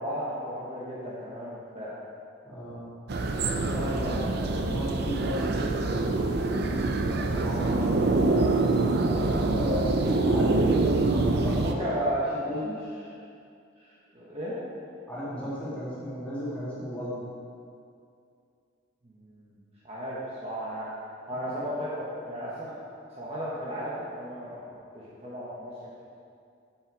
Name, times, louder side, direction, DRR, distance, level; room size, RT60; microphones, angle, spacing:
voice 1, 0.0-1.9 4.0-4.2 11.6-12.3 13.8-14.6 19.0-19.5 19.8-20.9 21.3-22.8 23.1-24.6 24.9-25.7, equal, 30° right, -7 dB, 1.2 m, -34 dB
voice 2, 2.4-2.9 3.5-11.9 12.4-12.7 15.1-17.1 21.3-21.4, equal, 5° left, -10 dB, 2.3 m, -35 dB
sound 1, 3.1-11.7, right 3 dB, 50° right, 0.5 m, -25 dB
7.6 x 7.4 x 4.8 m, 2.4 s
head